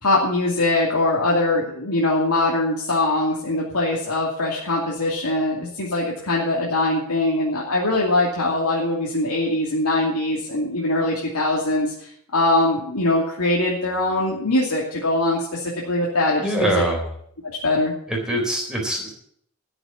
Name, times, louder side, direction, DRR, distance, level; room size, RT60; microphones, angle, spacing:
voice 1, 0.0-16.8 17.6-17.9, left 2 dB, 85° left, -4 dB, 2.7 m, -22 dB
voice 2, 16.4-17.0 18.1-19.1, right 1 dB, 5° right, -1 dB, 3.8 m, -23 dB
13.5 x 7.1 x 8.3 m, 0.66 s
head